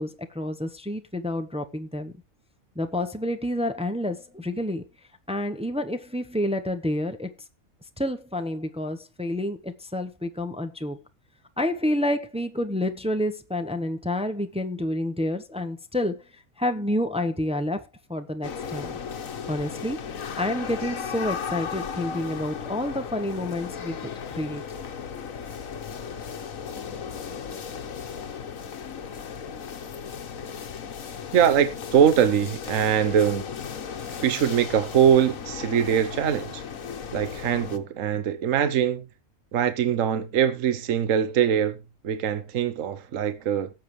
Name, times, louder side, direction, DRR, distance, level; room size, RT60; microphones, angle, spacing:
voice 1, 0.0-2.1 2.8-4.8 5.3-7.3 8.0-11.0 11.6-16.2 16.6-17.8 18.1-18.9 19.5-20.0 20.4-24.0 24.3-24.6, left 1 dB, 5° right, 0.7 m, -29 dB
sound 1, 18.4-37.8, left 6 dB, 70° left, 1.5 m, -36 dB
voice 2, 31.3-33.5 34.2-36.6 37.1-39.1 39.5-41.8 42.0-43.7, right 9 dB, 65° right, 1.3 m, -22 dB
18.0 x 7.6 x 3.2 m
omnidirectional pair, 1.5 m